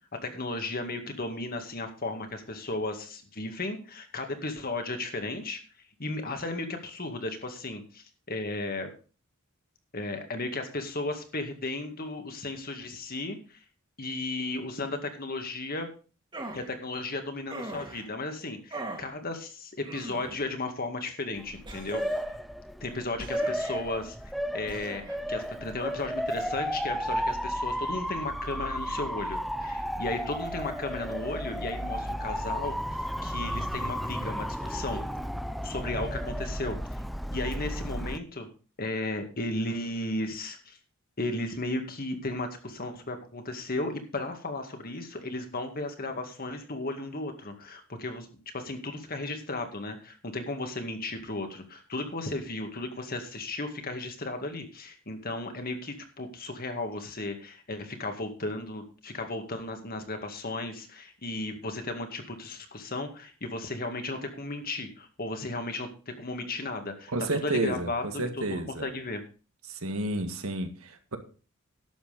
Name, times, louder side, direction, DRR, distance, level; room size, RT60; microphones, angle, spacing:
voice 1, 0.2-5.6 6.0-8.9 9.9-13.6 14.0-15.9 16.5-22.0 22.8-25.0 25.3-32.8 33.2-35.0 35.6-36.8 37.3-38.5 38.8-40.8 41.2-48.3 48.5-67.1 67.4-69.2, left 2 dB, 45° left, 6 dB, 2.1 m, -35 dB
sound 1, 16.3-16.7 17.5-18.1 18.7-19.1 19.8-20.5 21.7-22.4 23.2-23.8 24.7-25.2, right 2 dB, 20° right, 2.0 m, -40 dB
Motor vehicle (road) / Siren, 21.4-38.2, equal, ahead, 0.5 m, -33 dB
voice 2, 67.1-68.9 69.7-71.2, right 2 dB, 85° right, 7 dB, 1.8 m, -31 dB
11.5 x 7.6 x 5.1 m, 0.36 s
head